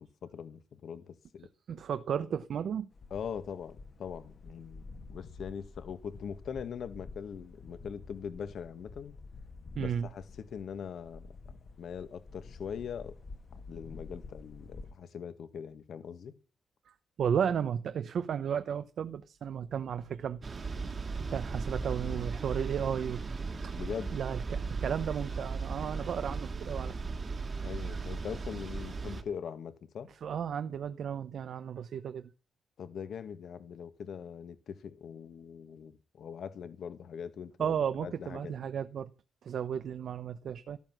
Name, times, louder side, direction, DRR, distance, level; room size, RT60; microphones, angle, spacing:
voice 1, 0.0-1.5 3.1-9.1 9.8-11.3 11.8-13.1 13.7-16.3 23.8-24.1 27.6-30.1 32.8-38.5, left 7 dB, 65° left, 1.8 m, -42 dB
voice 2, 1.7-2.9 9.8-10.1 16.9-20.4 21.3-23.2 23.6-23.7 24.1-27.0 30.2-32.3 37.6-39.1 39.4-40.8, right 8 dB, 60° right, 0.8 m, -34 dB
sound 1, 2.9-14.9, left 3 dB, 40° left, 1.5 m, -49 dB
sound 2, 20.4-29.2, right 4 dB, 35° right, 1.7 m, -37 dB
13.5 x 13.0 x 6.2 m
cardioid pair, 140°, 0 cm